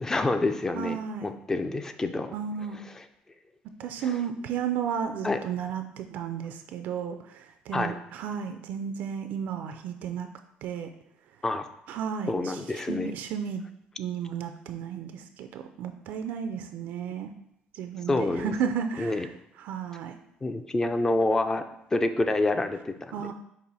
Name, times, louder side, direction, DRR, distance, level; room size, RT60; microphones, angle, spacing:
voice 1, 0.0-2.3 5.2-5.4 7.7-7.9 11.4-11.7 12.3-13.1 18.1-18.5 19.0-19.3 20.4-21.6 21.9-23.3, left 2 dB, 15° left, 8 dB, 0.4 m, -27 dB
voice 2, 0.7-1.3 2.3-2.8 3.8-10.3 10.6-10.9 11.9-13.6 14.0-17.3 17.7-19.3 19.6-20.2 23.1-23.3, right 7 dB, 70° right, 7 dB, 0.4 m, -33 dB
5.4 x 2.5 x 4.0 m, 0.76 s
cardioid pair, 130°, 3 cm